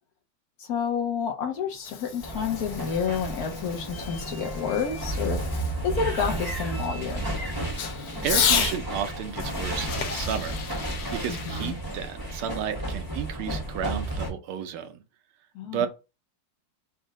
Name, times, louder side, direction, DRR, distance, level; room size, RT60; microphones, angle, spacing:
voice 1, 0.6-5.4 5.8-7.2 11.3-11.8 15.5-15.9, left 6 dB, 55° left, 1.2 m, -29 dB
Fireworks, 1.6-8.8 10.0-11.6, left 7 dB, 90° left, 1.8 m, -32 dB
sound 1, 2.2-14.3, right 1 dB, 25° right, 0.5 m, -32 dB
sound 2, 3.6-3.7 9.2-11.7, left 7 dB, 70° left, 1.3 m, -39 dB
voice 2, 8.2-10.6 10.8-15.0 15.6-15.9, right 8 dB, 80° right, 1.5 m, -32 dB
4.2 x 2.6 x 4.8 m
omnidirectional pair, 2.4 m